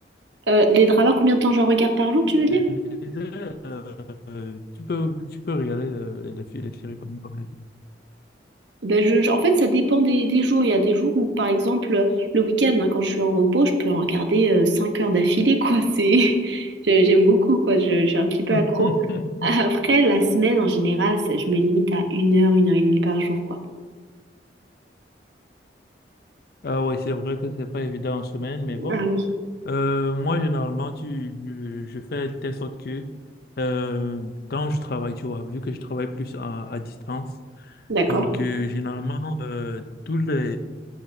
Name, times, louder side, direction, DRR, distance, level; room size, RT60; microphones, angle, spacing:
voice 1, 0.5-2.6 8.8-12.1 12.3-18.9 19.4-23.4 28.8-29.2 37.9-38.2, right 1 dB, 75° right, 5 dB, 1.0 m, -19 dB
voice 2, 2.3-2.8 3.0-7.6 18.5-19.6 26.6-29.0 29.6-33.1 33.6-37.3 37.6-37.8 38.1-40.6, left 2 dB, 55° left, 9 dB, 0.5 m, -28 dB
11.0 x 7.3 x 2.7 m, 1.4 s
head